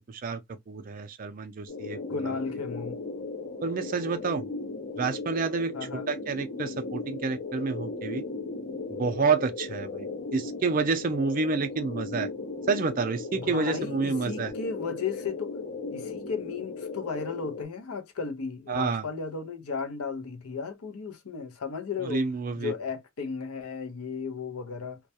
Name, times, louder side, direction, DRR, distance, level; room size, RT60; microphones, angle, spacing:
voice 1, 0.1-0.4 0.7-2.0 3.6-4.4 5.0-5.7 6.1-8.2 9.0-12.3 12.7-14.5 18.7-19.0 22.0-22.7, right 4 dB, 40° right, 0.3 m, -29 dB
sound 1, 1.7-17.6, left 3 dB, 50° left, 0.7 m, -37 dB
voice 2, 2.1-3.0 5.7-6.1 13.3-15.5 15.9-22.3 22.5-25.0, left 5 dB, 90° left, 0.6 m, -35 dB
2.2 x 2.1 x 2.7 m
head